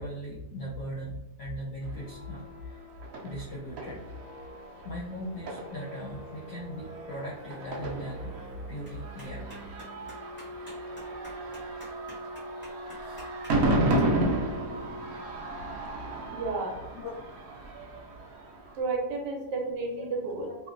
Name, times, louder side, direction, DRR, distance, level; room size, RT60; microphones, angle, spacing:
voice 1, 0.0-2.8 3.2-4.0 4.4-4.5 4.8-9.8 13.0-13.2 16.3-16.4 17.0-17.1 20.5-20.6, equal, 65° left, -6 dB, 0.8 m, -39 dB
sound 1, 1.8-18.8, right 1 dB, 65° right, 1.0 m, -33 dB
sound 2, 1.9-15.6, equal, 30° right, 0.5 m, -45 dB
Clapping, 7.4-14.0, equal, 10° left, 0.6 m, -53 dB
voice 2, 16.3-16.8 18.8-20.5, right 3 dB, 85° right, 1 dB, 1.3 m, -32 dB
2.9 x 2.4 x 2.4 m, 0.95 s
omnidirectional pair, 1.8 m